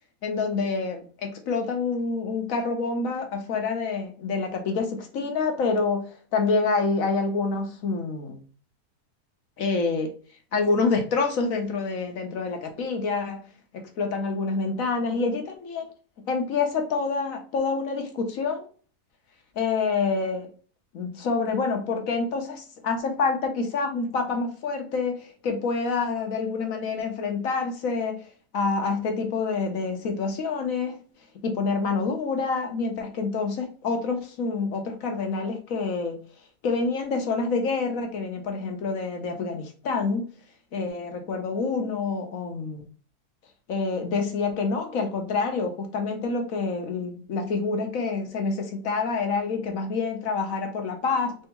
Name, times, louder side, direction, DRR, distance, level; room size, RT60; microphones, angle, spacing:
voice 1, 0.2-8.4 9.6-10.1 10.5-13.4 14.0-15.9 16.3-18.7 19.6-20.5 20.9-28.2 28.5-31.0 31.4-36.2 36.6-40.3 40.7-42.9 43.7-51.5, left 4 dB, 65° left, 1.2 m, -27 dB
3.5 x 3.4 x 2.9 m
omnidirectional pair, 1.7 m